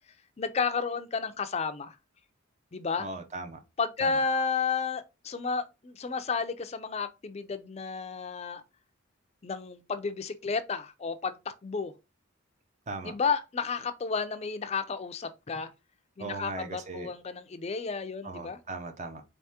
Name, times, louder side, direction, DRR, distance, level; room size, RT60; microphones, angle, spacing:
voice 1, 0.4-2.0 2.7-3.1 3.8-8.6 9.4-11.9 13.0-15.7 16.2-18.6, left 5 dB, 30° left, 0.4 m, -32 dB
voice 2, 3.0-3.6 4.0-4.2 12.9-13.1 16.2-17.1 18.2-19.2, right 3 dB, 35° right, 0.5 m, -38 dB
4.1 x 3.4 x 2.8 m
head